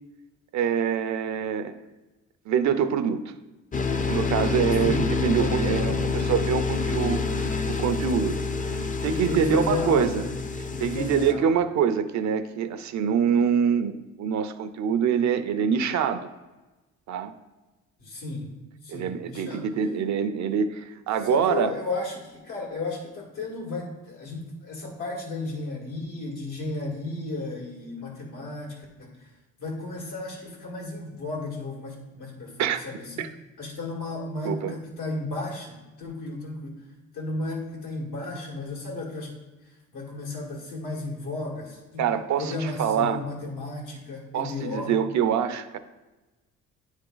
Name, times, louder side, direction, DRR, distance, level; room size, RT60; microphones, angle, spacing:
voice 1, 0.5-1.7 2.5-3.2 4.1-10.2 10.8-16.3 17.1-17.3 18.9-21.7 32.6-32.8 33.2-33.3 34.4-34.8 42.0-43.2 44.3-45.8, right 7 dB, 70° right, 10 dB, 0.6 m, -25 dB
sound 1, 3.7-11.3, left 4 dB, 25° left, 0.5 m, -27 dB
voice 2, 5.4-5.9 9.1-10.3 10.7-11.6 18.0-18.5 18.8-19.6 21.2-29.1 29.6-33.3 33.6-36.7 37.1-39.3 39.9-42.0 42.4-44.9, left 3 dB, 85° left, -2 dB, 2.0 m, -34 dB
9.6 x 3.6 x 3.9 m, 1.1 s
cardioid pair, 90°, 30 cm